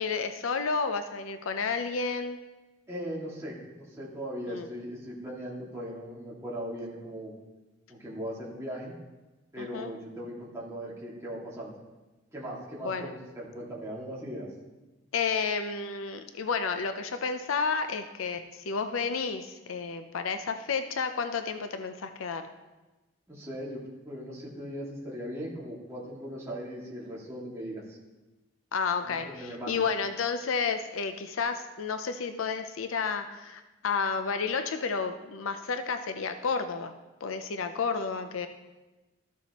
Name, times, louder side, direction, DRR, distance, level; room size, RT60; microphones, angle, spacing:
voice 1, 0.0-2.4 4.5-4.7 9.6-9.9 12.8-13.1 15.1-22.5 28.7-36.9 37.2-38.5, left 5 dB, 90° left, 8 dB, 0.5 m, -31 dB
voice 2, 2.9-7.3 7.9-9.0 9.5-11.7 12.3-14.5 23.3-28.0 29.1-29.8, equal, 15° right, -6 dB, 2.1 m, -39 dB
13.5 x 7.0 x 3.0 m, 1.1 s
head